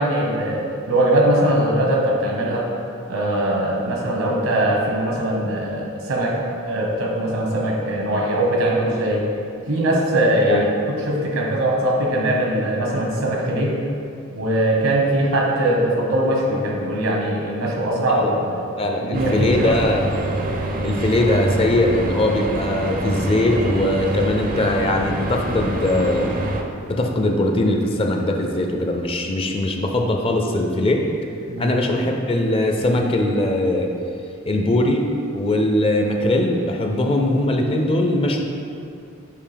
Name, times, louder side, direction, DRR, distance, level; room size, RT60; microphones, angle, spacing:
voice 1, 0.0-2.7 3.1-9.2 9.7-13.8 14.3-18.7 19.0-19.7 31.5-31.7, right 1 dB, 80° right, -1 dB, 1.1 m, -21 dB
voice 2, 18.8-20.1 20.8-26.3 26.9-31.1 31.6-33.9 34.5-35.1 35.3-38.4, left 1 dB, 25° left, 2 dB, 0.4 m, -20 dB
sound 1, 19.1-26.6, right 1 dB, 40° right, 0.4 m, -26 dB
6.8 x 2.8 x 5.0 m, 2.5 s
head